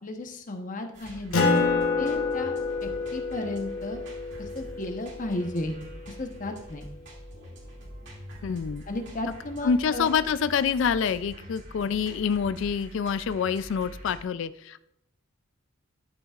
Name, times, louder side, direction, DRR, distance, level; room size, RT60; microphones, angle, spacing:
voice 1, 0.0-1.5 2.0-2.5 2.8-4.0 4.4-5.8 6.1-6.9 8.9-10.1, left 1 dB, 40° left, 5 dB, 1.0 m, -34 dB
sound 1, 0.9-14.2, equal, 60° right, 2.3 m, -45 dB
Acoustic guitar, 1.3-6.3, left 3 dB, 85° left, 1.7 m, -28 dB
voice 2, 8.4-8.8 9.6-14.8, left 6 dB, 60° left, 14 dB, 0.3 m, -26 dB
12.0 x 7.0 x 2.4 m, 0.76 s
head